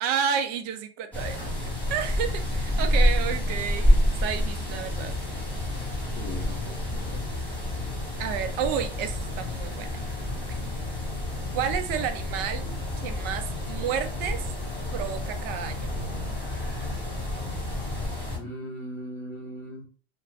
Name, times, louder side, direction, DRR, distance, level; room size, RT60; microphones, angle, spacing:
voice 1, 0.0-1.4 1.9-5.1 8.2-9.9 10.5-10.6 11.5-12.7 13.0-14.4 14.9-15.9, right 8 dB, 35° right, 8 dB, 0.4 m, -31 dB
sound 1, 1.1-18.4, left 1 dB, 5° left, 1.2 m, -28 dB
voice 2, 6.1-7.2 18.3-19.9, left 1 dB, 35° left, -6 dB, 1.0 m, -39 dB
2.5 x 2.4 x 3.3 m, 0.40 s
supercardioid pair, 155°, 31 cm